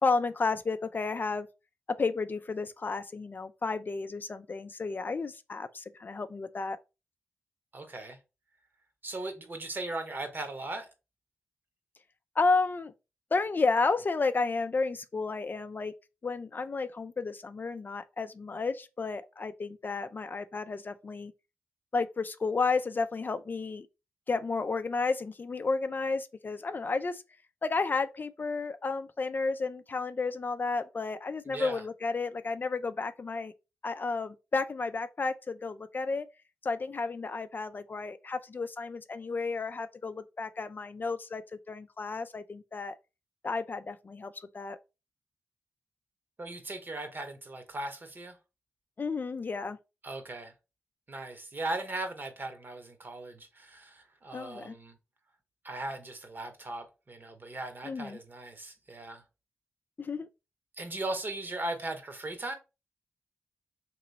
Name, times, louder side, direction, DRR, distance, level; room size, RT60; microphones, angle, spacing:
voice 1, 0.0-1.5 1.9-6.8 12.4-12.9 13.3-15.9 16.2-21.3 21.9-23.9 24.3-27.2 27.6-33.5 33.8-36.3 36.6-43.0 43.4-44.8 49.0-49.8 54.3-54.7 57.8-58.2 60.0-60.3, left 4 dB, 40° left, 0.4 m, -32 dB
voice 2, 7.7-8.2 9.0-10.9 31.5-31.8 46.4-48.4 50.0-50.5 51.1-55.0 55.6-59.2 60.8-62.6, right 2 dB, 45° right, 1.1 m, -38 dB
3.0 x 3.0 x 3.9 m
supercardioid pair, 45°, 5 cm